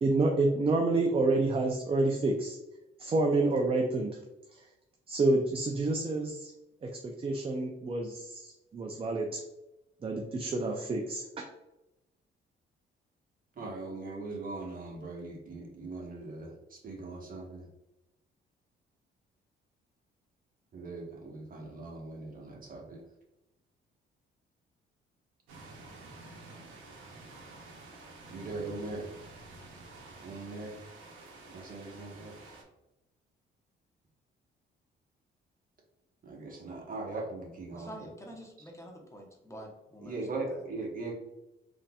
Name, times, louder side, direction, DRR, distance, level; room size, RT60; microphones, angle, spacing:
voice 1, 0.0-2.6 3.0-4.2 5.1-6.5 6.8-9.4 10.0-11.4, right 2 dB, 30° right, 2 dB, 0.4 m, -28 dB
voice 2, 13.5-17.7 20.7-23.1 28.3-29.1 30.2-30.8 31.5-32.4 36.2-37.9 40.0-41.1, right 3 dB, 45° right, -1 dB, 1.0 m, -40 dB
sound 1, 25.5-32.6, right 3 dB, 90° right, 0.7 m, -50 dB
voice 3, 37.7-40.2 40.5-40.6, equal, 15° left, 0 dB, 0.7 m, -47 dB
3.8 x 2.7 x 2.2 m, 0.96 s
cardioid pair, 90°, 20 cm